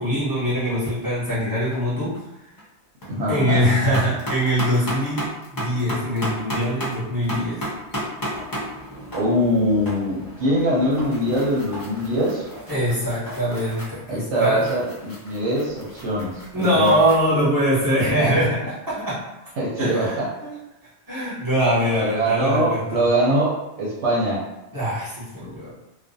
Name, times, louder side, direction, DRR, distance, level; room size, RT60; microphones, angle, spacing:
voice 1, 0.0-2.2 3.3-7.6 12.7-14.6 16.5-18.6 18.9-19.2 19.8-20.5 21.1-23.0 24.7-25.7, equal, 20° right, -10 dB, 1.0 m, -23 dB
sound 1, 0.8-0.9 1.3-1.8 2.1-2.2 2.6-3.1 3.4-17.2, equal, 25° left, 0.5 m, -34 dB
voice 2, 3.1-3.7 9.1-12.4 14.1-16.4 16.7-16.9 18.2-18.4 19.6-20.3 22.0-24.5, equal, 80° right, -6 dB, 0.9 m, -22 dB
2.4 x 2.1 x 2.6 m, 0.96 s
omnidirectional pair, 1.2 m